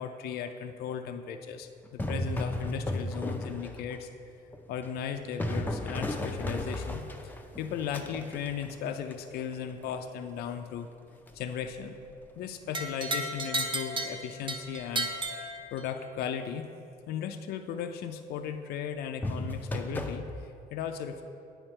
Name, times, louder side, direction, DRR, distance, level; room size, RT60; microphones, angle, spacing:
voice 1, 0.0-4.1 4.7-7.0 7.6-10.9 11.3-12.0 12.4-16.7 17.1-21.3, left 8 dB, 70° left, 7 dB, 0.4 m, -36 dB
sound 1, 1.8-4.0 4.5-9.5 11.3-11.5 19.2-20.2, left 1 dB, 10° left, 0.5 m, -34 dB
sound 2, 12.7-16.1, right 2 dB, 30° right, 0.7 m, -34 dB
8.9 x 4.9 x 4.3 m, 2.5 s
cardioid pair, 110°, 17 cm